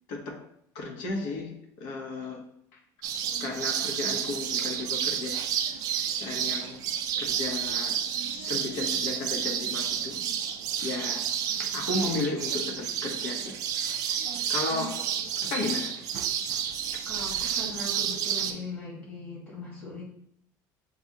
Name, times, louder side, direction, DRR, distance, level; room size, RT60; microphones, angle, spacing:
voice 1, 0.1-0.4 0.7-2.4 3.4-5.4 6.2-6.8 7.2-8.0 8.3-10.2 10.8-11.3 11.6-13.5 14.5-15.0 15.4-15.9, left 3 dB, 70° left, 1.0 m, -34 dB
sound 1, 3.0-18.5, right 8 dB, 50° right, 0.4 m, -30 dB
voice 2, 17.0-20.0, left 2 dB, 15° left, 1.6 m, -40 dB
6.5 x 2.5 x 2.7 m
cardioid pair, 170°, 8 cm